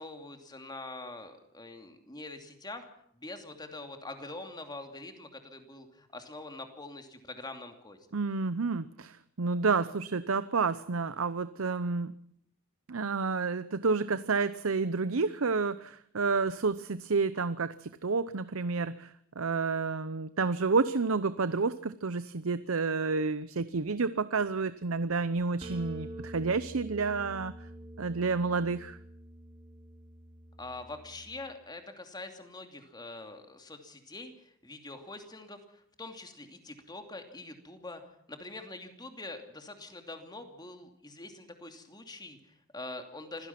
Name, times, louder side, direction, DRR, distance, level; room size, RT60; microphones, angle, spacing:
voice 1, 0.0-2.9 3.1-8.0 30.6-38.0 38.3-43.5, left 2 dB, 20° left, 5 dB, 2.7 m, -44 dB
voice 2, 8.1-12.1 12.9-27.5 28.0-29.0, right 4 dB, 85° right, 14 dB, 0.8 m, -30 dB
sound 1, 25.6-31.4, right 1 dB, 30° right, 2.7 m, -46 dB
26.0 x 16.5 x 6.0 m, 0.69 s
head